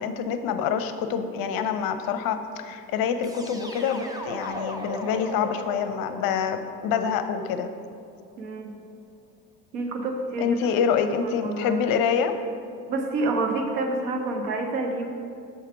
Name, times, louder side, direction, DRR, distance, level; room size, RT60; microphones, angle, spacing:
voice 1, 0.0-7.7 10.4-12.3, left 7 dB, 45° left, 9 dB, 0.6 m, -26 dB
sound 1, 3.2-8.1, equal, 10° right, 0.7 m, -38 dB
voice 2, 8.4-8.7 9.7-10.6 11.4-11.8 12.9-15.1, right 3 dB, 70° right, 3 dB, 1.1 m, -28 dB
6.4 x 5.7 x 4.7 m, 2.4 s
figure-of-eight pair, 55°, 50 cm